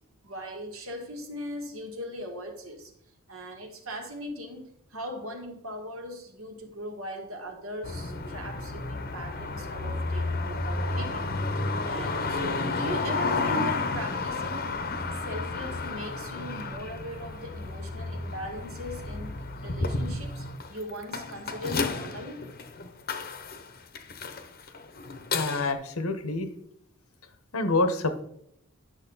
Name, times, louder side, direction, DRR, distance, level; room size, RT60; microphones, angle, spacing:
voice 1, 0.2-2.9 3.3-14.7 15.1-22.4, equal, 75° right, 3 dB, 1.8 m, -39 dB
sound 1, 7.8-25.7, left 3 dB, 45° left, 0.9 m, -32 dB
voice 2, 25.3-26.5 27.5-28.2, left 2 dB, 85° left, 8 dB, 1.2 m, -27 dB
10.5 x 6.5 x 4.0 m, 0.73 s
head